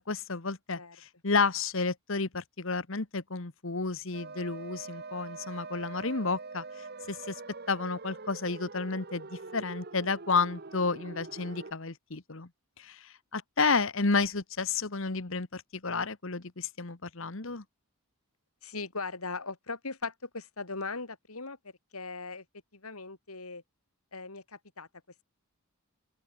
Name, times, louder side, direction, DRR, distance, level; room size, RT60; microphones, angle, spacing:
voice 1, 0.0-6.6 7.1-7.3 7.7-12.5 12.8-17.6, left 4 dB, 60° left, 1.4 m, -31 dB
sound 1, 4.1-11.7, right 3 dB, 45° right, 1.0 m, -44 dB
voice 2, 18.6-21.6 21.9-22.5 22.7-23.6 24.1-24.9, left 3 dB, 80° left, 3.7 m, -39 dB
open air
head